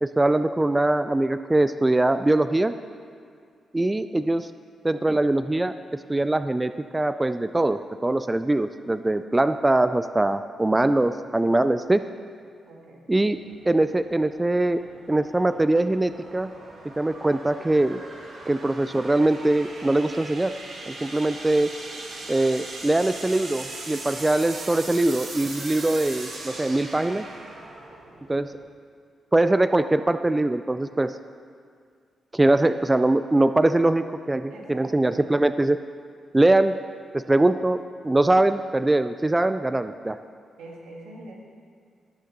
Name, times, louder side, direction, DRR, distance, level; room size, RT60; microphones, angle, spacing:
voice 1, 0.0-2.7 3.7-4.5 4.8-12.0 13.1-13.4 13.7-14.8 15.1-16.5 17.0-18.0 18.5-20.5 20.9-21.7 22.3-27.3 28.3-28.5 29.3-31.1 32.3-35.8 36.3-36.7 37.1-37.8 38.0-40.2, right 2 dB, 20° right, 11 dB, 0.4 m, -22 dB
voice 2, 12.7-13.0 34.5-35.4 40.6-41.4, right 2 dB, 90° right, -1 dB, 1.7 m, -43 dB
sound 1, 13.2-28.7, right 2 dB, 70° right, 1.8 m, -40 dB
18.0 x 6.6 x 3.9 m, 2.1 s
supercardioid pair, 55°, 0 cm